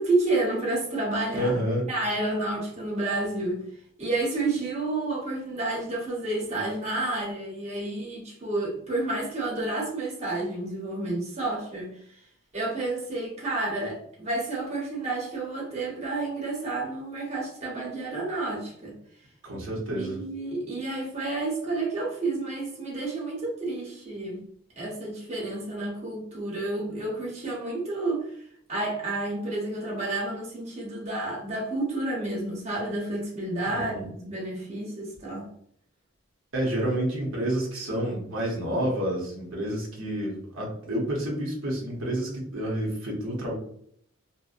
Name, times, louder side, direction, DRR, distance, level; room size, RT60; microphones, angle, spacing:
voice 1, 0.0-3.6 4.0-11.9 12.5-19.0 19.9-24.4 24.8-28.3 28.7-35.5, right 2 dB, 35° right, -3 dB, 0.8 m, -30 dB
voice 2, 1.3-1.9 19.4-20.2 33.7-34.1 36.5-43.5, right 1 dB, 90° right, -2 dB, 0.8 m, -29 dB
2.6 x 2.0 x 2.4 m, 0.66 s
head